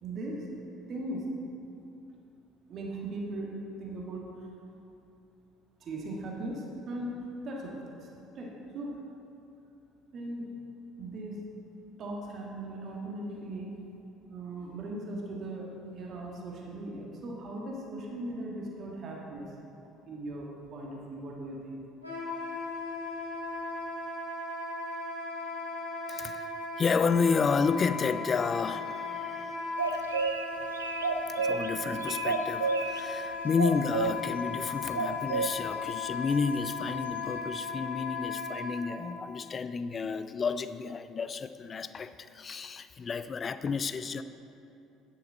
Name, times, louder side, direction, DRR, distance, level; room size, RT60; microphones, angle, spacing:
voice 1, 0.0-0.5 0.9-1.2 2.7-4.5 5.8-7.1 7.4-8.1 8.3-9.0 10.1-10.5 11.0-11.5 12.0-13.7 14.3-19.5 20.0-21.8, right 1 dB, 45° right, -2 dB, 1.5 m, -38 dB
Wind instrument woodwind instrument, 22.0-38.8, left 4 dB, 90° left, 1.6 m, -37 dB
voice 2, 26.1-26.5 26.8-29.5 31.4-44.2, left 5 dB, 35° left, 12 dB, 0.4 m, -31 dB
sound 1, 29.8-30.5 30.7-31.7 32.0-33.0 33.6-34.1 35.0-35.5, right 5 dB, 80° right, 0.4 m, -30 dB
9.7 x 7.7 x 4.3 m, 2.8 s
figure-of-eight pair, 55°, 0 cm